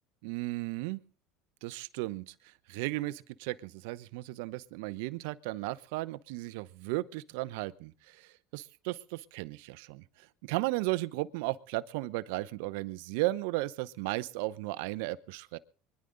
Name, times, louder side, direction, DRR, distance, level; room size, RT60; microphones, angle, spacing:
voice 1, 0.2-1.0 1.6-15.6, right 19 dB, 80° right, 18 dB, 0.7 m, -35 dB
24.5 x 11.0 x 3.9 m, 0.42 s
supercardioid pair, 95°, 0 cm